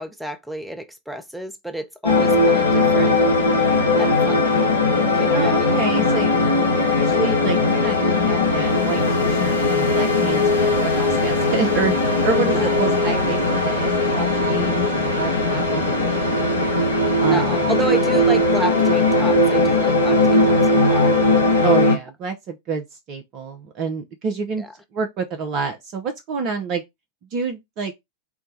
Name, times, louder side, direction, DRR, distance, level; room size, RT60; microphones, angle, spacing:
voice 1, 0.0-3.1 4.0-4.7 5.1-5.8 12.4-12.6 17.2-21.1 24.6-24.7, right 1 dB, ahead, 0.8 m, -31 dB
sound 1, 2.0-22.0, left 2 dB, 80° left, 1.1 m, -19 dB
voice 2, 5.3-6.4 6.7-16.6 17.2-17.7 21.5-24.6 24.9-26.8 27.3-27.9, right 5 dB, 40° right, 0.7 m, -28 dB
4.6 x 2.2 x 3.9 m
figure-of-eight pair, 90°, 0 cm